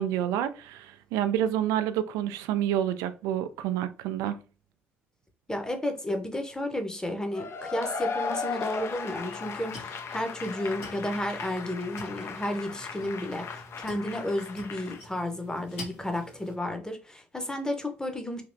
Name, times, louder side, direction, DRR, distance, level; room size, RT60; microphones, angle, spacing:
voice 1, 0.0-4.4, right 11 dB, 60° right, 0.3 m, -28 dB
voice 2, 5.5-18.4, left 1 dB, 10° left, 0.8 m, -32 dB
Cheering / Applause / Crowd, 7.3-15.0, left 5 dB, 40° left, 0.4 m, -37 dB
sound 1, 9.2-16.6, left 1 dB, 75° left, 1.0 m, -47 dB
3.3 x 2.8 x 2.6 m
figure-of-eight pair, 45°, 6 cm